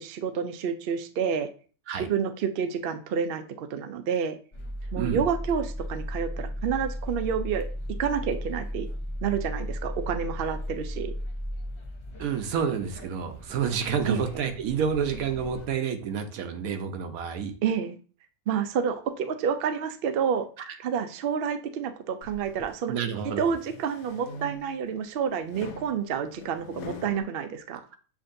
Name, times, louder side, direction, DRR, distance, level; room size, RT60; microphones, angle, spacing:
voice 1, 0.0-1.5 2.0-4.4 4.9-7.7 8.0-8.9 9.2-11.1 14.1-14.2 17.6-17.9 18.5-20.5 20.8-22.9 23.2-27.8, right 7 dB, 65° right, 8 dB, 0.5 m, -29 dB
sound 1, 4.5-15.7, equal, 50° left, 0.3 m, -36 dB
voice 2, 12.2-17.5 20.6-20.7 22.9-23.4, right 7 dB, 85° right, 7 dB, 1.2 m, -29 dB
sound 2, 22.2-22.8 23.3-24.9 25.5-27.2, left 3 dB, 85° left, 1.1 m, -43 dB
7.3 x 2.6 x 2.6 m, 0.39 s
omnidirectional pair, 1.5 m